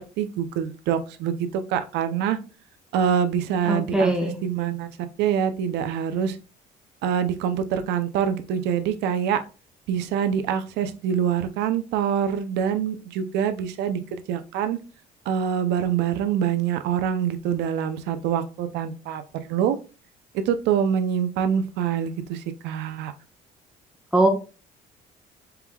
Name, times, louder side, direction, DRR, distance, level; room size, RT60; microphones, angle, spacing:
voice 1, 0.2-2.4 2.9-4.9 5.2-6.4 7.0-9.4 9.9-14.8 15.3-19.8 20.3-23.1, right 8 dB, 85° right, 9 dB, 0.5 m, -25 dB
voice 2, 3.7-4.3 24.1-24.3, right 1 dB, 5° right, 2 dB, 0.8 m, -20 dB
4.5 x 3.6 x 2.2 m, 0.33 s
cardioid pair, 110°, 17 cm